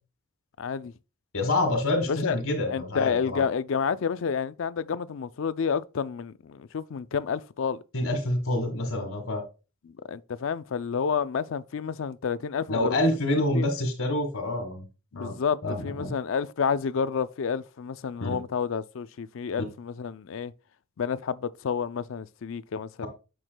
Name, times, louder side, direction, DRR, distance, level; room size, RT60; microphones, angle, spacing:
voice 1, 0.6-0.9 2.1-2.4 2.7-7.8 9.8-13.0 13.3-13.7 15.1-20.5 21.0-23.1, left 6 dB, 65° left, 0.4 m, -30 dB
voice 2, 1.3-3.4 7.9-9.4 12.7-14.8 15.1-15.3 15.6-16.1 18.2-18.4 23.0-23.1, left 1 dB, 80° left, 1.5 m, -27 dB
9.0 x 6.1 x 2.2 m
head